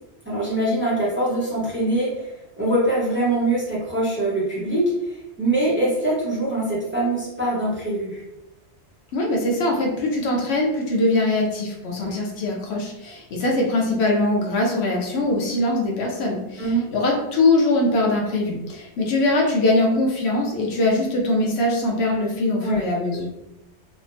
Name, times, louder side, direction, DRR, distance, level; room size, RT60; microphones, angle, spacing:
voice 1, 0.2-8.2 12.0-12.2 16.6-16.9 22.6-22.8, right 1 dB, 10° right, -8 dB, 0.8 m, -23 dB
voice 2, 9.1-23.3, left 2 dB, 80° left, 0 dB, 0.9 m, -22 dB
3.3 x 2.1 x 2.6 m, 0.90 s
omnidirectional pair, 1.1 m